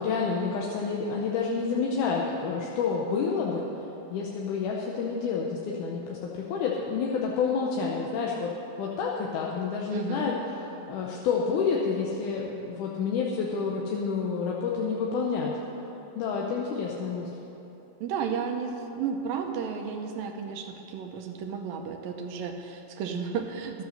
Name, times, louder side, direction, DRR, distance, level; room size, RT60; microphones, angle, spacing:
voice 1, 0.0-3.7 4.1-8.5 8.8-10.4 10.6-15.5 16.2-17.3, left 5 dB, 70° left, -2 dB, 2.1 m, -29 dB
voice 2, 9.9-10.3 18.0-23.8, right 6 dB, 80° right, 4 dB, 2.4 m, -33 dB
12.5 x 8.2 x 6.5 m, 3.0 s
omnidirectional pair, 4.2 m